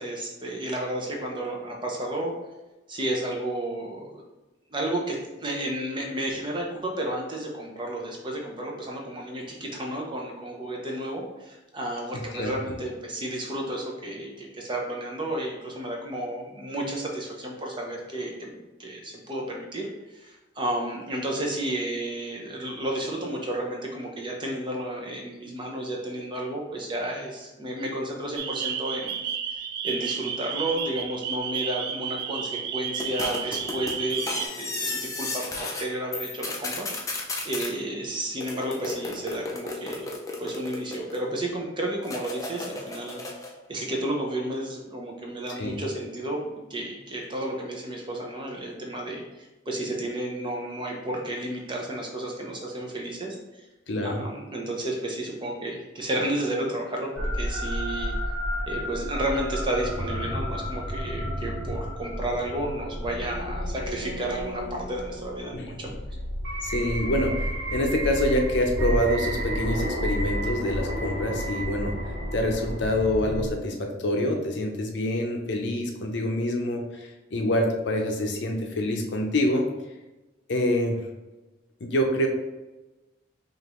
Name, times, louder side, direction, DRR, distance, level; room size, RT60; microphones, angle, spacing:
voice 1, 0.0-2.3 2.9-4.2 4.7-29.2 29.5-40.1 40.4-53.6 54.0-58.1 58.7-66.0, right 1 dB, 25° right, 0 dB, 0.7 m, -32 dB
sound 1, 28.4-34.5, right 7 dB, 55° right, 0.3 m, -32 dB
sound 2, 33.0-35.9 36.1-37.7 38.4-41.4 42.0-43.6, left 2 dB, 15° left, 0.5 m, -34 dB
voice 2, 53.9-54.2 65.5-65.8 66.6-72.0 72.3-76.9 77.3-79.7 80.5-81.0 81.8-82.3, left 1 dB, 65° left, 2 dB, 0.6 m, -26 dB
sound 3, 57.2-73.5, equal, 70° right, 1.1 m, -31 dB
5.1 x 2.6 x 3.0 m, 1.1 s
head